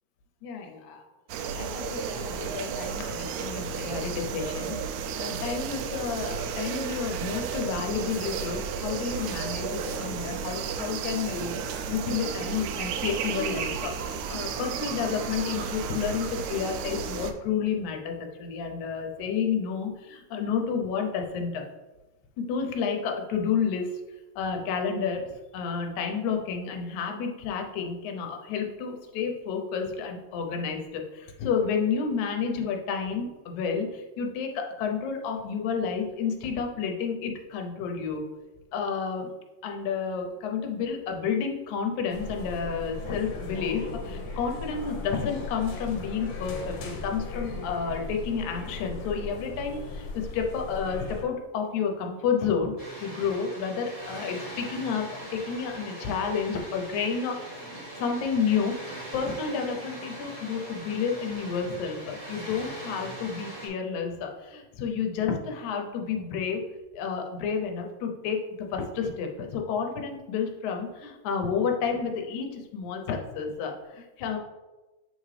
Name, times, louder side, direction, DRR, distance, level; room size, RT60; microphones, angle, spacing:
voice 1, 0.4-1.1 1.6-4.8 5.2-21.7 22.4-23.9 24.4-25.3 25.5-38.2 38.7-39.3 39.6-52.7 53.0-55.1 55.3-66.6 67.0-74.4, left 6 dB, 85° left, 2 dB, 2.1 m, -30 dB
sound 1, 1.3-17.3, right 6 dB, 85° right, 1.9 m, -33 dB
sound 2, 42.1-51.2, left 3 dB, 65° left, 1.8 m, -37 dB
Water, 52.8-63.7, right 1 dB, 30° right, 0.7 m, -41 dB
7.7 x 3.7 x 3.3 m, 1.1 s
omnidirectional pair, 3.3 m